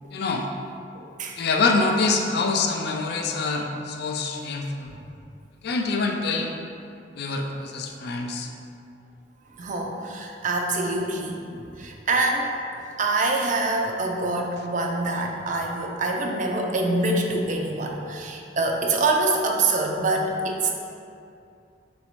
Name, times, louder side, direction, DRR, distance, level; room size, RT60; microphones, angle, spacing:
voice 1, 0.1-0.5 1.4-4.9 5.6-6.5 7.2-8.5, left 3 dB, 60° left, 2 dB, 0.4 m, -25 dB
voice 2, 0.9-1.4 4.9-5.0 9.6-12.5 13.0-20.7, right 2 dB, 45° right, 1 dB, 0.4 m, -25 dB
4.0 x 2.7 x 4.4 m, 2.5 s
head